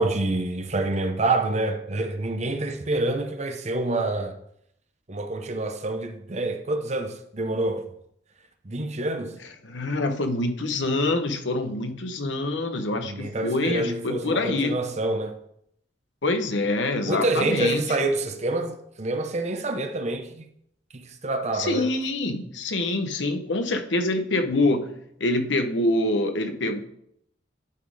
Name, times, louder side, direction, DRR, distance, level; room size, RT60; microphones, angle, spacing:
voice 1, 0.0-4.3 5.1-7.9 8.6-9.3 13.1-15.4 17.0-20.5 20.9-21.9, right 2 dB, 40° right, 0.8 m, -27 dB
voice 2, 9.6-14.8 16.2-17.8 21.5-26.8, left 2 dB, 90° left, 1.0 m, -25 dB
11.0 x 4.2 x 4.8 m
head